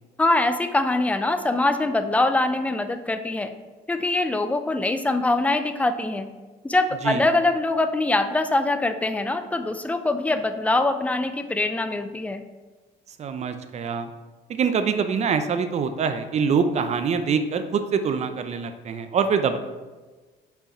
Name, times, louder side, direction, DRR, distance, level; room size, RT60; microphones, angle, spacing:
voice 1, 0.2-3.5 3.9-6.3 6.6-12.4, left 2 dB, 10° left, 9 dB, 0.4 m, -23 dB
voice 2, 13.2-14.1 14.5-19.6, right 6 dB, 40° right, 9 dB, 0.6 m, -24 dB
5.7 x 4.5 x 4.3 m, 1.3 s
cardioid pair, 110°, 17 cm